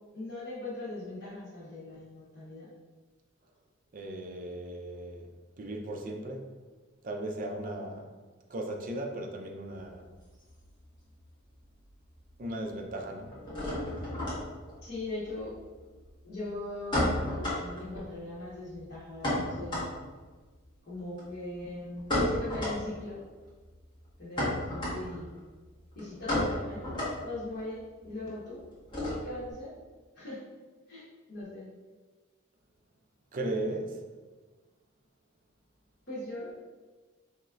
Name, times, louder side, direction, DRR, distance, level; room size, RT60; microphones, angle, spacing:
voice 1, 0.1-2.7 14.8-15.5 16.2-19.8 20.9-23.2 24.2-25.4 25.9-26.8 27.2-28.6 29.2-29.7 30.1-30.4 30.9-31.7 36.1-36.5, left 2 dB, 55° left, -11 dB, 1.2 m, -40 dB
voice 2, 3.9-5.3 5.6-6.5 7.0-8.1 8.5-10.0 12.4-13.4 33.3-34.0, right 1 dB, 40° right, 3 dB, 0.5 m, -36 dB
sound 1, 9.6-11.3 11.5-12.2 12.5-29.5, left 1 dB, 25° left, 1.3 m, -34 dB
4.4 x 3.0 x 2.4 m, 1.3 s
head